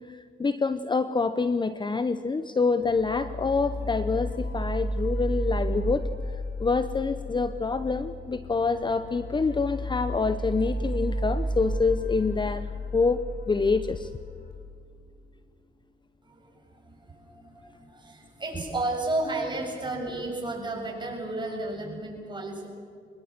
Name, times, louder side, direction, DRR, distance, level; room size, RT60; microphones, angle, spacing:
voice 1, 0.0-6.0 6.6-14.1, left 4 dB, 25° left, 12 dB, 0.8 m, -26 dB
sound 1, 2.8-14.5, equal, 55° left, 6.0 m, -33 dB
voice 2, 16.2-22.7, right 2 dB, 20° right, 0 dB, 7.4 m, -33 dB
24.0 x 21.0 x 7.5 m, 2.2 s
cardioid pair, 90°, 20 cm